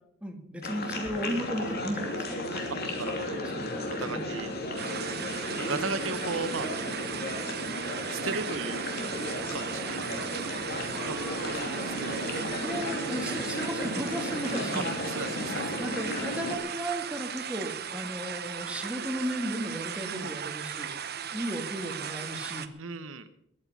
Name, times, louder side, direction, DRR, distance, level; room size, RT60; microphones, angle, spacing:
voice 1, 0.2-2.8 3.4-4.2 12.6-14.9 15.8-22.7, equal, 5° right, 3 dB, 2.0 m, -35 dB
sound 1, 0.6-16.6, left 1 dB, 50° left, 2.9 m, -34 dB
sound 2, 1.0-13.2, left 1 dB, 85° left, 6.9 m, -49 dB
voice 2, 3.0-3.4 3.9-4.5 5.5-6.7 8.1-8.8 9.5-10.1 11.0-12.7 14.7-15.7 20.0-20.3 22.8-23.3, right 4 dB, 75° right, 10 dB, 1.0 m, -36 dB
sound 3, 4.8-22.7, right 8 dB, 50° right, 1.0 m, -37 dB
21.5 x 8.9 x 5.5 m, 0.77 s
head